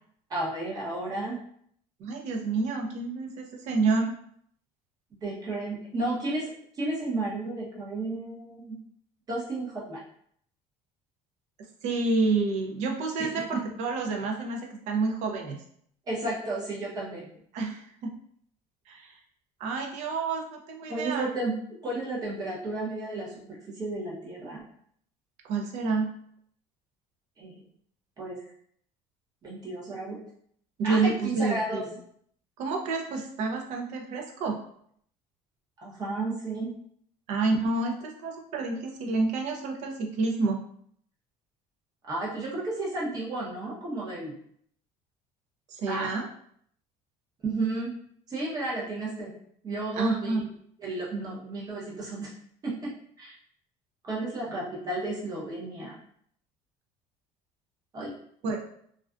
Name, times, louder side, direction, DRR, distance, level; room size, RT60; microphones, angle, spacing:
voice 1, 0.3-1.4 5.2-8.8 9.3-10.0 13.2-13.6 16.1-17.3 20.9-21.5 21.8-24.6 27.4-27.5 28.2-28.4 29.4-30.2 30.8-31.8 35.8-36.7 42.0-44.3 45.9-46.1 47.4-48.0 48.3-49.3 49.6-50.3 50.8-52.3 52.6-52.9 53.2-53.3 54.0-56.0 57.9-58.1, right 2 dB, 30° right, -4 dB, 0.8 m, -33 dB
voice 2, 2.0-4.1 11.8-15.6 17.5-18.1 18.9-19.1 19.6-21.3 25.4-26.1 30.8-31.8 32.6-34.6 37.3-40.6 45.7-46.3 50.0-50.4 58.4-58.6, right 3 dB, 60° right, 2 dB, 0.5 m, -28 dB
2.4 x 2.2 x 2.4 m, 0.65 s
cardioid pair, 150°, 13 cm